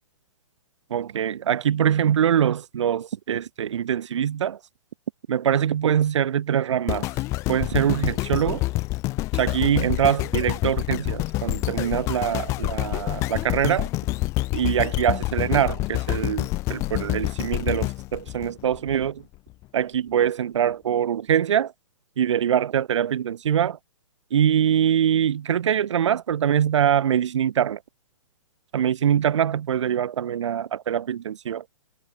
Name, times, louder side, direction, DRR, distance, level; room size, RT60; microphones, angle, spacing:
voice 1, 0.9-4.6 5.3-7.1 7.5-8.6 9.3-13.9 14.5-19.2 19.7-21.7 22.2-23.8 24.3-27.8 28.7-31.6, right 9 dB, 65° right, 0.7 m, -23 dB
sound 1, 6.9-19.1 19.6-19.7, left 20 dB, 20° left, 0.3 m, -27 dB
figure-of-eight pair, 125°, 16 cm